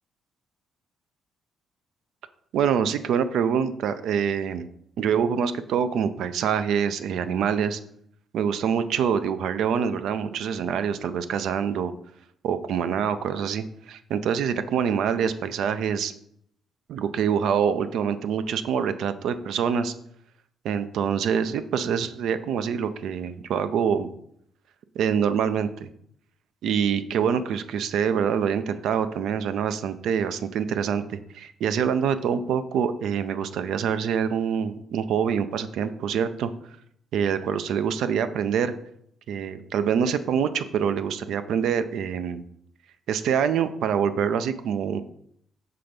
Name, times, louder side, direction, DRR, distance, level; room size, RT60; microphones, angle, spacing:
voice 1, 2.5-4.7 5.0-7.8 8.3-11.9 12.4-16.1 16.9-19.9 20.6-24.1 25.0-25.9 26.6-36.5 37.1-38.7 39.3-42.4 43.1-45.0, right 7 dB, 75° right, 11 dB, 0.4 m, -25 dB
5.7 x 3.4 x 5.1 m, 0.70 s
cardioid pair, 90°, 0 cm